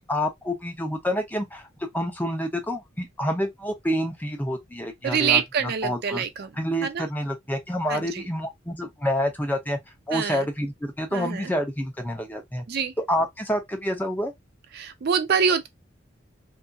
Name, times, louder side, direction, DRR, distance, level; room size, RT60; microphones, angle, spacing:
voice 1, 0.0-1.7 1.9-6.2 6.6-9.8 10.1-12.6 13.0-14.3, equal, 10° left, 0.5 m, -28 dB
voice 2, 5.0-6.5 6.8-7.1 7.9-8.0 10.1-10.4 11.1-11.5 12.7-12.9 14.7-15.7, right 7 dB, 55° right, 0.4 m, -25 dB
2.7 x 2.5 x 2.2 m
head